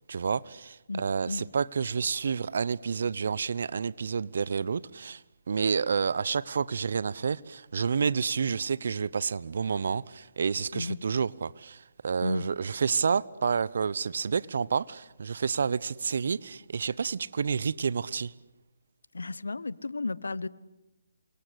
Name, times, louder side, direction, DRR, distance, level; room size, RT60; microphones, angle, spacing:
voice 1, 0.1-5.2 5.5-18.3, right 6 dB, 60° right, 0.9 m, -29 dB
voice 2, 19.1-20.5, left 3 dB, 75° left, 1.2 m, -33 dB
28.5 x 25.5 x 8.2 m
figure-of-eight pair, 140°, 0 cm